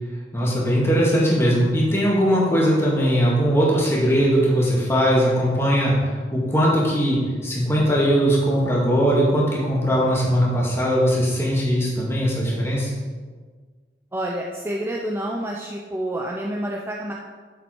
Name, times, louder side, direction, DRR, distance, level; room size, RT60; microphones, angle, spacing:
voice 1, 0.3-5.9 6.3-12.9, equal, 15° left, -5 dB, 2.2 m, -20 dB
voice 2, 14.1-17.1, right 1 dB, 15° right, -1 dB, 0.6 m, -28 dB
7.4 x 7.3 x 4.5 m, 1.5 s
head